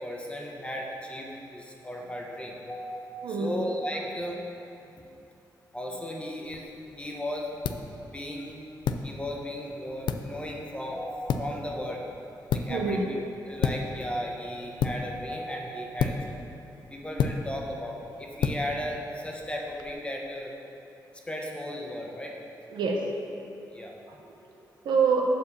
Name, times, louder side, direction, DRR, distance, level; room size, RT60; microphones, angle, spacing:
voice 1, 0.0-4.3 5.7-6.6 6.9-7.5 8.1-8.5 9.0-12.0 12.5-13.0 13.5-16.2 16.9-20.5 21.3-22.3 23.7-23.9, equal, 15° left, -1 dB, 1.1 m, -35 dB
voice 2, 3.2-3.6 8.0-8.1 12.7-13.0 13.5-13.6 22.7-23.1 24.1-25.2, right 5 dB, 85° right, 0 dB, 1.0 m, -27 dB
sound 1, 6.4-19.9, left 6 dB, 80° left, 0.4 m, -34 dB
7.4 x 4.6 x 6.9 m, 2.8 s
cardioid pair, 95°, 8 cm